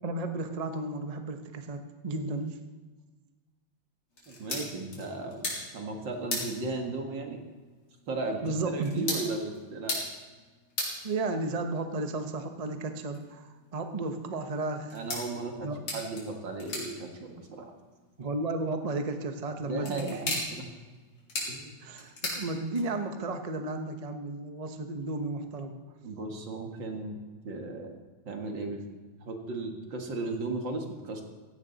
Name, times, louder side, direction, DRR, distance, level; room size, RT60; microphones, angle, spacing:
voice 1, 0.0-2.6 8.4-9.1 11.0-14.9 15.6-15.8 18.2-20.4 21.8-25.8, right 2 dB, 45° right, 6 dB, 0.5 m, -33 dB
sound 1, 4.1-23.2, left 2 dB, 85° left, 4.8 m, -40 dB
voice 2, 4.3-7.4 8.1-10.0 14.9-17.7 19.6-20.7 21.5-21.8 26.0-27.2 27.4-28.0 28.3-28.8 29.2-31.2, right 3 dB, 60° right, 2 dB, 2.5 m, -36 dB
16.0 x 15.5 x 4.1 m, 1.3 s
omnidirectional pair, 2.3 m